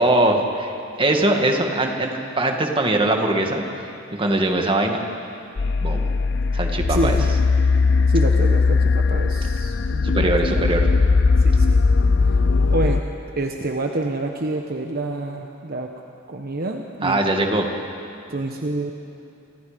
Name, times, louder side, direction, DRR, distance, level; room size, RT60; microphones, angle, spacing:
voice 1, 0.0-3.7 4.1-5.0 5.8-6.0 6.5-7.2 10.0-10.9 17.0-17.7, right 1 dB, 25° right, 3 dB, 2.1 m, -21 dB
sound 1, 5.6-13.0, left 4 dB, 60° left, 0.6 m, -19 dB
voice 2, 6.9-7.3 8.1-11.0 11.4-11.8 12.7-13.0 13.4-15.9 16.3-17.2 18.3-18.9, right 2 dB, 50° right, 2 dB, 1.2 m, -27 dB
29.0 x 25.5 x 5.3 m, 2.8 s
head